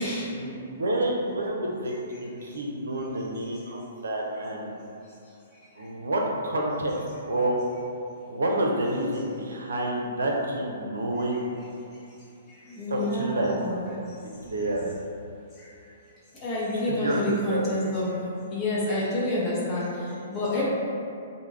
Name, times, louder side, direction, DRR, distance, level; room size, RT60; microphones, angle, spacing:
voice 1, 0.4-1.9 2.2-4.7 5.8-6.9 7.2-7.6 8.3-11.4 12.9-13.6 14.0-14.1 14.5-14.9 16.9-17.6, right 1 dB, 70° right, -1 dB, 0.4 m, -28 dB
voice 2, 12.5-14.7 15.6-15.7 16.3-20.6, left 1 dB, 20° left, -8 dB, 0.9 m, -29 dB
3.4 x 2.0 x 3.1 m, 2.6 s
figure-of-eight pair, 120°, 0 cm